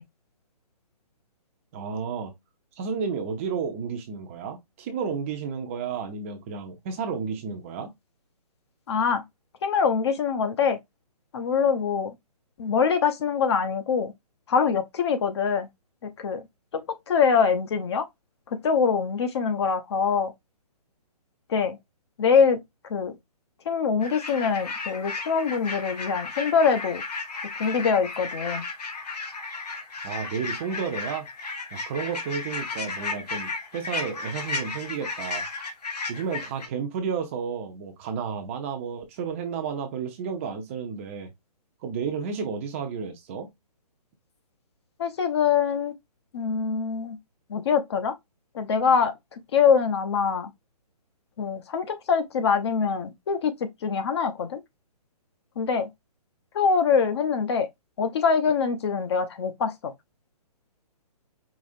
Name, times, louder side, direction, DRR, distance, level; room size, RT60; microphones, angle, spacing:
voice 1, 1.7-2.3 2.8-7.9 30.0-31.3 31.7-35.4 36.1-41.3 41.8-43.5, right 6 dB, 20° right, 0.6 m, -32 dB
voice 2, 8.9-9.2 9.6-10.8 11.3-12.1 12.6-14.1 14.5-15.7 16.0-16.4 16.7-18.1 18.5-20.3 21.5-21.8 22.2-22.6 22.9-23.2 23.7-27.0 27.6-28.6 45.0-45.9 46.3-47.2 47.5-48.1 48.5-50.5 51.4-54.6 55.6-55.9 56.5-57.7 58.0-59.9, left 6 dB, 40° left, 0.8 m, -24 dB
sound 1, 24.0-36.7, left 3 dB, 75° left, 1.5 m, -34 dB
5.0 x 2.8 x 2.6 m
hypercardioid pair, 160°, 21 cm